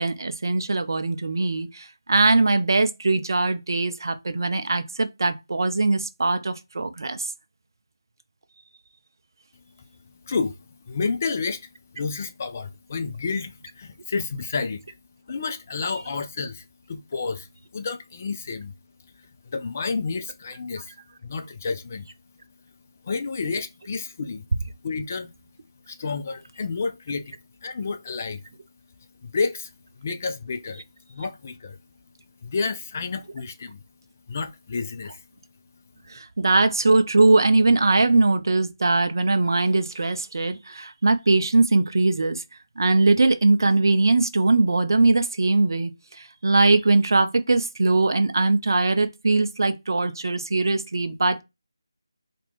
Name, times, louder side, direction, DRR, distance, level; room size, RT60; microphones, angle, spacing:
voice 1, 0.0-7.3 36.1-42.4 42.8-45.9 46.2-51.4, right 3 dB, 55° right, 0.5 m, -21 dB
voice 2, 10.2-15.0 15.3-17.5 17.7-18.7 19.2-21.0 21.2-22.1 23.0-24.5 24.8-25.3 25.9-27.4 27.6-28.4 29.2-30.8 31.1-31.8 32.4-33.8 34.3-35.2, left 4 dB, 30° left, 0.3 m, -30 dB
2.9 x 2.5 x 3.4 m
figure-of-eight pair, 165°, 2 cm